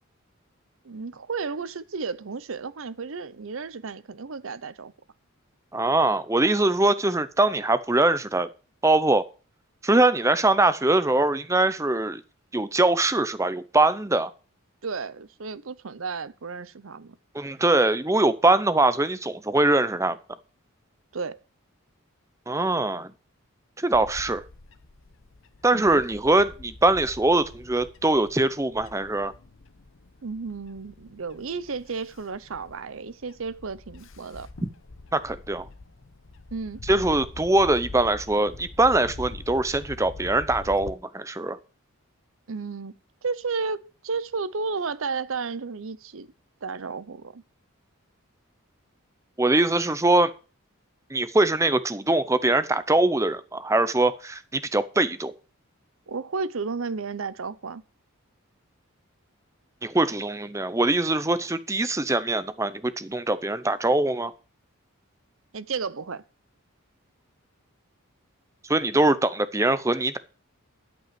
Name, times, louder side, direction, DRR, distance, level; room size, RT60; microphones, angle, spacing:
voice 1, 0.8-4.9 14.8-17.2 21.1-21.4 25.7-26.0 30.2-34.5 36.5-36.8 42.5-42.9 43.2-46.3 46.6-47.4 56.1-57.8 65.5-66.2, right 4 dB, 65° right, 0.7 m, -33 dB
voice 2, 5.7-8.5 8.8-9.3 9.8-12.2 12.5-14.3 17.3-20.2 22.5-23.1 23.8-24.4 25.6-29.3 34.6-34.7 35.1-35.7 36.9-41.6 49.4-50.3 51.1-55.3 59.8-64.3 68.7-70.2, right 2 dB, 15° right, 0.6 m, -22 dB
Bird / Wind, 23.9-40.9, left 2 dB, 60° left, 0.9 m, -44 dB
12.0 x 5.4 x 7.5 m
head